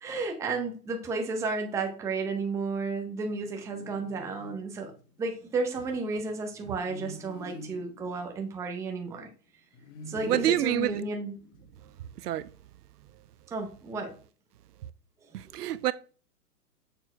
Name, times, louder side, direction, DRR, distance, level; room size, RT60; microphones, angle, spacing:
voice 1, 0.0-4.9 5.2-9.3 10.1-11.4 13.5-14.2 15.2-15.3, right 3 dB, 5° right, 0.6 m, -32 dB
sound 1, 3.3-5.4 6.5-9.2 9.7-12.0, left 2 dB, 30° left, 0.9 m, -47 dB
voice 2, 10.3-11.0 12.2-12.5 15.3-15.9, right 13 dB, 75° right, 0.7 m, -27 dB
6.6 x 4.3 x 4.4 m
hypercardioid pair, 140°, 47 cm